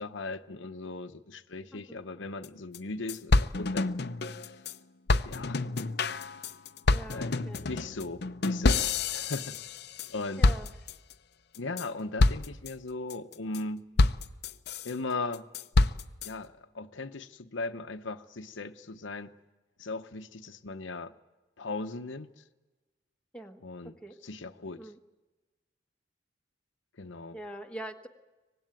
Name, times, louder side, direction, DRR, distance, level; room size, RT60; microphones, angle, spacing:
voice 1, 0.0-3.9 5.2-5.6 7.1-9.6 10.1-10.5 11.6-13.8 14.8-15.5 16.2-19.3 19.8-21.1 21.6-22.4 23.6-24.0 24.2-24.8 27.0-27.4, left 3 dB, 80° left, 0.9 m, -38 dB
sound 1, 2.4-2.5 2.7-2.8 3.1-4.7 5.1-10.1 10.4-11.1 11.5-11.9 12.2-12.7 13.1-13.6 14.0-14.9 15.3-16.3, left 3 dB, 55° left, 0.7 m, -27 dB
voice 2, 6.9-7.6 10.4-10.7 23.3-24.2 24.8-25.0 27.3-28.1, right 1 dB, 5° left, 1.4 m, -44 dB
24.0 x 19.5 x 9.1 m
head